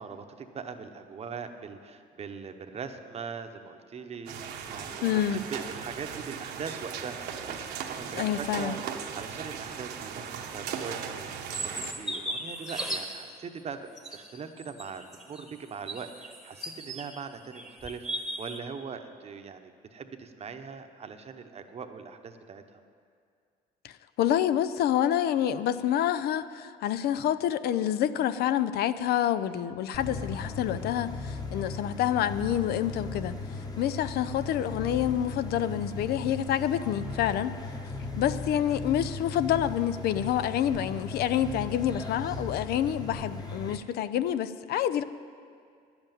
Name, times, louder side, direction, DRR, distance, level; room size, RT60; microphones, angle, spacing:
voice 1, 0.0-5.2 5.5-8.8 9.1-13.8 14.1-22.8 38.1-38.2, right 6 dB, 40° right, 7 dB, 0.9 m, -41 dB
sound 1, 4.3-11.9, right 7 dB, 70° right, 1.1 m, -38 dB
voice 2, 5.0-5.4 8.1-8.8 23.8-33.4 33.8-37.5 38.2-45.0, left 10 dB, 70° left, 13 dB, 0.5 m, -27 dB
sound 2, 11.5-13.3 14.0-17.2 17.5-18.6, right 1 dB, ahead, 1.1 m, -37 dB
sound 3, 29.9-43.8, left 3 dB, 20° left, 1.1 m, -37 dB
10.5 x 7.9 x 9.0 m, 2.3 s
cardioid pair, 110°, 17 cm